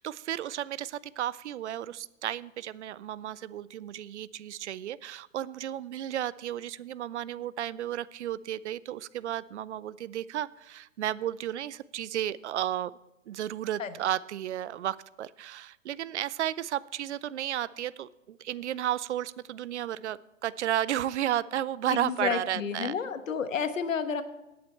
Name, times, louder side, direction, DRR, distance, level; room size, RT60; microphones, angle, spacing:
voice 1, 0.0-12.9 13.3-23.0, right 12 dB, 60° right, 19 dB, 0.5 m, -33 dB
voice 2, 21.9-24.2, left 6 dB, 75° left, 11 dB, 1.3 m, -31 dB
16.5 x 8.6 x 4.4 m, 0.98 s
figure-of-eight pair, 120°, 39 cm